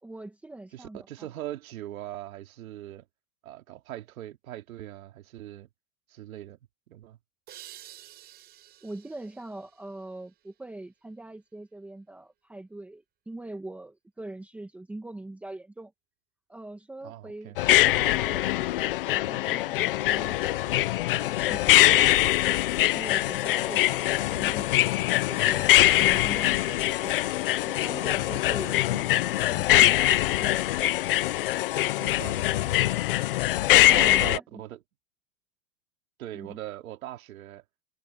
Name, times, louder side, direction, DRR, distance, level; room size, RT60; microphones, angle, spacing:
voice 1, 0.0-1.3 8.8-15.9 16.5-22.6 22.9-27.2 27.6-30.7 33.7-34.6 36.3-36.6, right 2 dB, 5° right, 1.5 m, -42 dB
voice 2, 0.7-3.1 3.4-5.7 6.1-6.6 6.9-7.2 17.0-17.6 32.0-32.8 33.9-34.8 36.2-37.6, right 13 dB, 70° right, 2.8 m, -40 dB
sound 1, 7.5-10.9, right 13 dB, 20° right, 5.1 m, -51 dB
sound 2, 17.6-34.4, left 15 dB, 40° left, 0.5 m, -23 dB
supercardioid pair, 170°, 43 cm